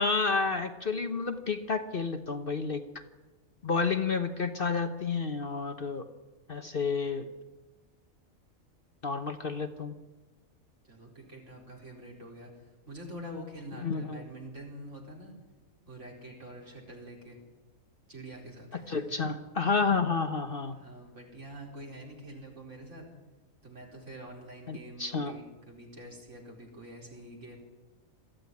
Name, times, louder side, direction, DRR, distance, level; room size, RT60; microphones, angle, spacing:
voice 1, 0.0-2.8 3.6-6.1 6.5-7.3 9.0-9.9 13.8-14.2 18.7-20.8 24.7-25.3, left 4 dB, 45° left, 7 dB, 1.2 m, -30 dB
voice 2, 10.8-15.3 15.9-17.4 18.1-19.2 20.7-23.1 23.6-27.6, right 1 dB, 60° right, 0 dB, 4.9 m, -46 dB
22.5 x 14.5 x 9.6 m, 1.2 s
omnidirectional pair, 1.4 m